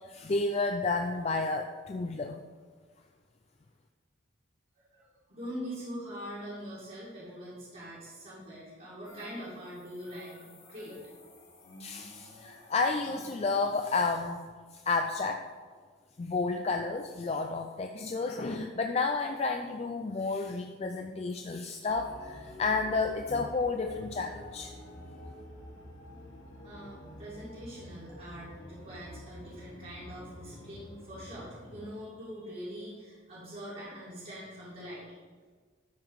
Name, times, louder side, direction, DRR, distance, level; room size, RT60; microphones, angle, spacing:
voice 1, 0.1-2.4 11.8-14.4 14.9-15.4 16.2-24.7, left 3 dB, 30° left, 4 dB, 0.3 m, -31 dB
voice 2, 4.8-11.0 26.6-35.2, equal, 45° right, -10 dB, 2.1 m, -43 dB
sound 1, 9.0-14.2, left 1 dB, 85° left, 1.8 m, -52 dB
sound 2, 21.9-31.9, equal, 70° left, 2.6 m, -48 dB
11.5 x 3.9 x 4.7 m, 1.5 s
head